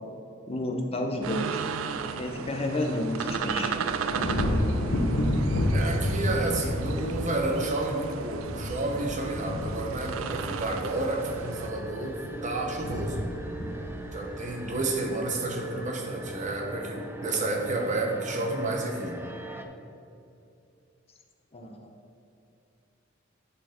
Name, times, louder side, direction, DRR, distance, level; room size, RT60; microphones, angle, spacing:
voice 1, 0.5-1.6 2.2-3.7 21.5-22.0, left 1 dB, 30° left, 2 dB, 0.7 m, -30 dB
sound 1, 1.2-11.7, right 6 dB, 90° right, 0.4 m, -35 dB
sound 2, 4.1-15.4 15.8-16.3, left 1 dB, 70° left, 0.8 m, -31 dB
voice 2, 5.7-12.2 12.4-13.2 14.1-19.2, right 2 dB, 40° right, 1 dB, 1.0 m, -30 dB
sound 3, 10.9-19.6, right 1 dB, 10° right, 0.5 m, -41 dB
10.5 x 4.3 x 4.4 m, 2.6 s
head